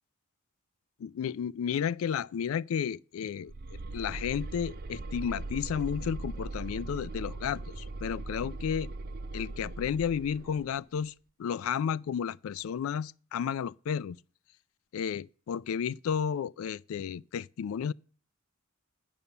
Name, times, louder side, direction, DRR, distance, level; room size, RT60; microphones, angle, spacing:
voice 1, 1.0-3.5 3.9-8.9 9.3-11.1 11.4-14.2 14.9-17.9, left 7 dB, 70° left, 0.3 m, -32 dB
sound 1, 3.5-10.7, right 2 dB, 45° right, 0.5 m, -39 dB
8.5 x 5.4 x 6.9 m
head